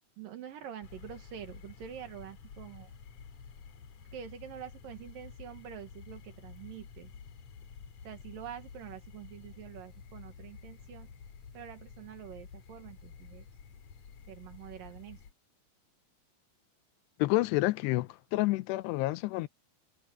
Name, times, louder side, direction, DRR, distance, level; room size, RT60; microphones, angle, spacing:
voice 1, 0.2-2.9 4.1-7.1 8.0-11.1 11.5-13.5 14.3-15.2, right 9 dB, 65° right, 3.0 m, -46 dB
sound 1, 0.8-15.3, left 6 dB, 50° left, 2.9 m, -51 dB
voice 2, 17.2-19.5, left 19 dB, 85° left, 2.9 m, -29 dB
omnidirectional pair, 4.7 m